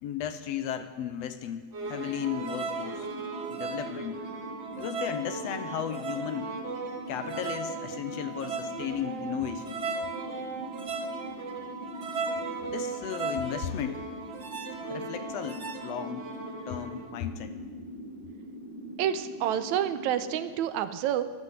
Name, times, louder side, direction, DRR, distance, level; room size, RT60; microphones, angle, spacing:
voice 1, 0.0-3.1 3.5-4.2 4.8-6.5 7.1-9.8 12.7-14.0 14.9-16.2 16.7-17.5, left 9 dB, 75° left, 10 dB, 1.7 m, -35 dB
sound 1, 1.7-17.1, right 4 dB, 65° right, 0.6 m, -37 dB
sound 2, 1.8-20.4, equal, 25° right, 6.1 m, -43 dB
voice 2, 19.0-21.2, right 10 dB, 85° right, 12 dB, 2.1 m, -28 dB
13.0 x 11.0 x 9.2 m, 1.5 s
omnidirectional pair, 3.3 m